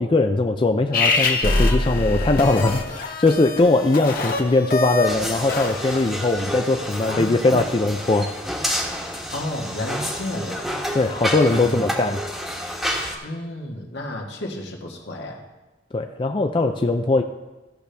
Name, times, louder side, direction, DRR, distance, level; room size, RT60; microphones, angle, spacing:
voice 1, 0.0-8.3 10.9-12.2 15.9-17.2, left 2 dB, 30° left, 5 dB, 0.4 m, -20 dB
sound 1, 0.9-6.4, left 2 dB, 50° left, 1.2 m, -24 dB
sound 2, 5.1-13.1, equal, ahead, 1.2 m, -29 dB
voice 2, 9.3-10.7 11.6-11.9 13.2-15.4, left 1 dB, 75° left, 0 dB, 1.6 m, -31 dB
15.5 x 6.7 x 3.4 m, 1.1 s
head